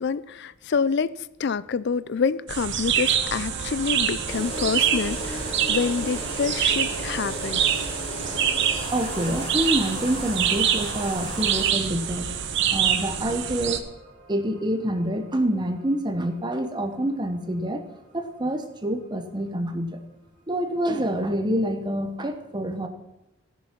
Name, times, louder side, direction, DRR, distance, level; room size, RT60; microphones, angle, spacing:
voice 1, 0.0-7.9, left 5 dB, 50° left, 0.4 m, -27 dB
sound 1, 2.5-13.8, right 9 dB, 55° right, 0.9 m, -26 dB
sound 2, 3.0-20.0, right 3 dB, 90° right, 1.8 m, -45 dB
sound 3, 4.3-11.7, left 1 dB, 25° left, 1.9 m, -36 dB
voice 2, 8.9-12.3 12.7-13.9 14.3-20.0 20.5-22.9, right 1 dB, 20° right, 0.8 m, -27 dB
15.5 x 7.0 x 5.9 m
head